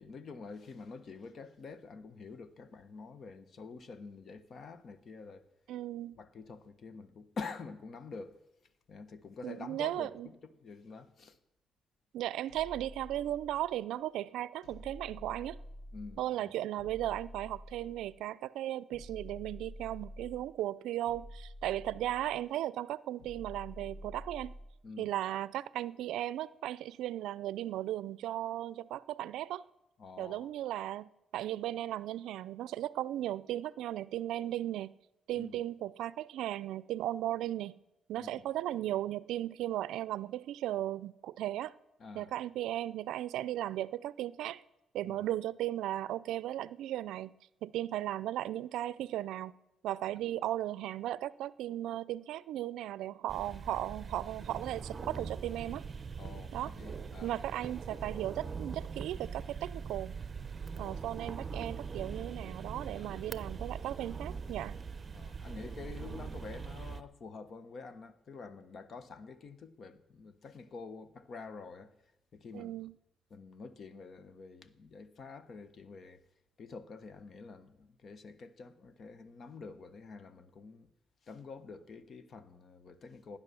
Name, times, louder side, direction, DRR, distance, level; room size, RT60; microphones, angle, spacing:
voice 1, 0.0-5.5 6.2-8.4 8.9-11.4 15.9-16.5 24.8-25.1 30.0-30.5 35.3-35.6 38.2-38.5 42.0-42.3 45.0-45.2 56.2-57.3 60.7-61.0 62.9-63.2 65.1-72.0 72.3-72.9 73.3-76.2 76.6-80.9 81.2-83.4, left 4 dB, 50° left, 1.2 m, -47 dB
voice 2, 5.7-6.2 9.4-10.3 12.1-15.6 16.2-24.6 25.0-29.6 30.2-34.9 35.3-37.8 38.1-41.8 42.1-44.6 44.9-47.3 47.6-49.5 49.8-55.9 56.5-56.7 57.2-60.2 60.8-64.8 72.5-72.9, right 13 dB, 85° right, 0.4 m, -36 dB
sound 1, 12.5-13.8 14.6-16.3 16.8-18.2 18.9-20.5 21.0-22.4 23.2-24.8, equal, 75° left, 5.9 m, -49 dB
sound 2, 53.3-67.0, right 5 dB, 35° right, 0.8 m, -42 dB
17.5 x 10.0 x 7.0 m
cardioid pair, 90°, 0 cm